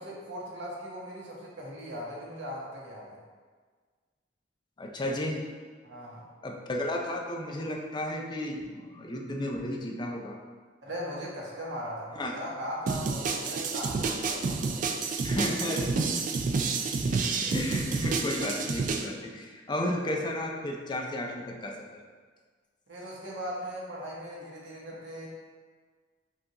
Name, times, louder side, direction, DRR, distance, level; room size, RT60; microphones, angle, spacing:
voice 1, 0.0-3.2 5.8-6.3 10.8-15.0 16.5-16.9 22.9-25.3, equal, 65° right, -4 dB, 1.0 m, -39 dB
voice 2, 4.8-5.4 6.4-10.4 12.2-12.3 15.2-16.3 17.2-22.0, left 1 dB, 25° left, 1 dB, 0.4 m, -33 dB
sound 1, 12.9-19.0, right 4 dB, 45° right, 0.3 m, -29 dB
5.6 x 2.5 x 2.9 m, 1.5 s
head